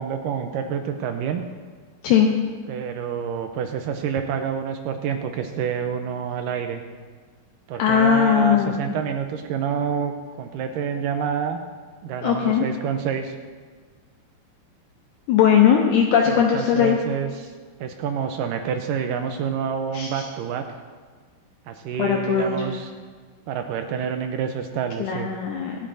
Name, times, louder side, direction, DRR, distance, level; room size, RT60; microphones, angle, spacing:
voice 1, 0.0-1.4 2.7-6.8 7.7-11.6 12.0-13.4 16.3-17.5 17.8-20.7 21.7-22.9 23.5-25.3, right 7 dB, 80° right, 6 dB, 2.0 m, -28 dB
voice 2, 7.8-8.8 12.2-12.7 15.3-17.0 19.9-20.2 22.0-22.6 25.0-25.8, left 8 dB, 80° left, 1 dB, 1.7 m, -19 dB
25.5 x 8.8 x 2.6 m, 1.5 s
omnidirectional pair, 4.4 m